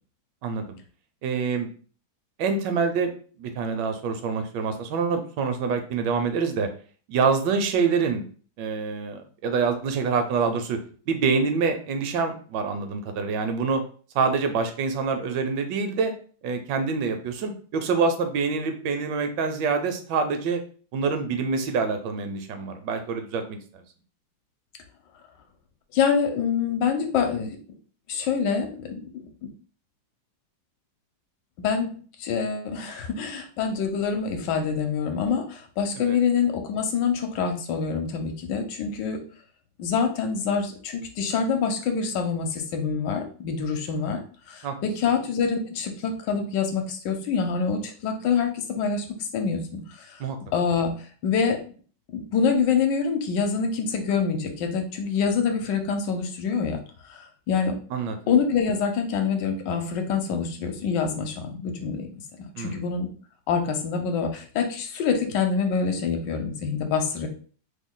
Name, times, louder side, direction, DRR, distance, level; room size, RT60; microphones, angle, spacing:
voice 1, 0.4-0.8 1.2-1.7 2.4-3.1 3.4-6.7 7.1-8.2 8.6-10.8 11.1-13.8 14.1-16.1 16.4-20.6 20.9-23.8 36.0-36.2 44.6-44.7 50.2-50.4 57.9-58.3 62.6-62.9, right 5 dB, 75° right, 7 dB, 1.2 m, -26 dB
voice 2, 25.9-27.6 28.1-29.5 31.6-39.2 39.8-44.2 44.5-50.2 50.5-51.6 52.1-56.8 57.1-57.8 58.3-62.1 62.4-63.1 63.5-67.3, left 6 dB, 75° left, 5 dB, 1.2 m, -26 dB
3.2 x 2.2 x 3.7 m, 0.42 s
omnidirectional pair, 2.0 m